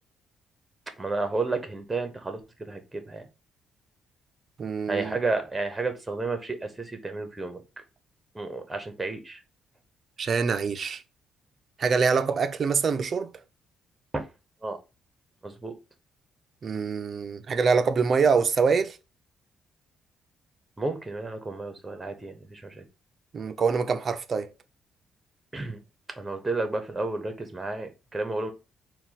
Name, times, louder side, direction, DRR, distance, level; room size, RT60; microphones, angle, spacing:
voice 1, 1.0-2.4 2.7-3.2 4.9-7.6 8.3-9.4 14.1-14.2 14.6-14.8 15.4-15.7 20.8-22.8 25.5-25.8 26.2-28.5, right 3 dB, 20° right, 1.0 m, -31 dB
voice 2, 4.6-5.2 10.2-11.0 11.8-13.3 16.6-19.0 23.3-24.5, right 5 dB, 45° right, 0.5 m, -25 dB
4.3 x 2.3 x 4.1 m
cardioid pair, 90°, 0 cm